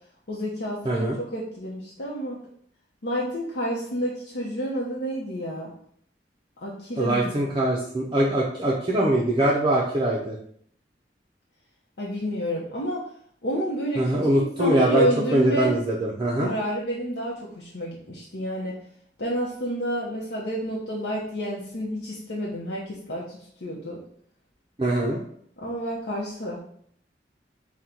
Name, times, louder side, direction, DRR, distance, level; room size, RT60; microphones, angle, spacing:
voice 1, 0.3-2.4 3.0-5.7 6.6-7.4 12.0-13.0 13.4-15.7 16.4-18.8 19.2-24.0 25.6-26.6, equal, 80° left, -5 dB, 0.7 m, -29 dB
voice 2, 0.8-1.2 7.0-10.4 14.0-16.5 24.8-25.2, right 1 dB, 25° right, -4 dB, 0.5 m, -23 dB
3.8 x 2.2 x 4.3 m, 0.64 s
head